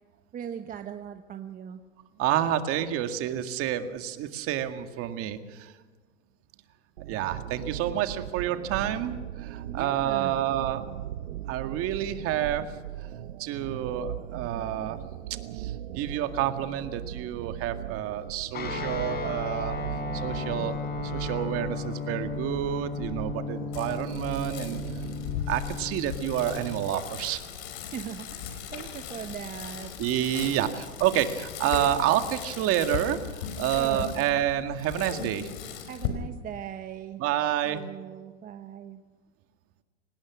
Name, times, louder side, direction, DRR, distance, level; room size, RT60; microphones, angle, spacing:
voice 1, 0.3-1.8 9.7-10.4 27.9-29.9 30.5-31.2 33.8-34.1 35.9-37.2 37.6-39.0, right 9 dB, 25° right, 7 dB, 1.0 m, -39 dB
voice 2, 2.2-5.7 7.1-10.8 11.5-12.7 13.0-13.1 13.4-15.0 15.5-19.8 20.1-24.9 25.5-27.4 30.0-33.3 33.6-35.5 37.2-37.8, right 11 dB, 40° right, 8 dB, 2.0 m, -29 dB
sound 1, 7.0-25.4, right 12 dB, 75° right, 1.3 m, -38 dB
Guitar, 18.5-27.1, left 5 dB, 25° left, 4.4 m, -35 dB
Bicycle, 23.7-36.1, left 8 dB, 55° left, 4.9 m, -38 dB
25.0 x 19.5 x 6.2 m, 1.4 s
hypercardioid pair, 125°, 36 cm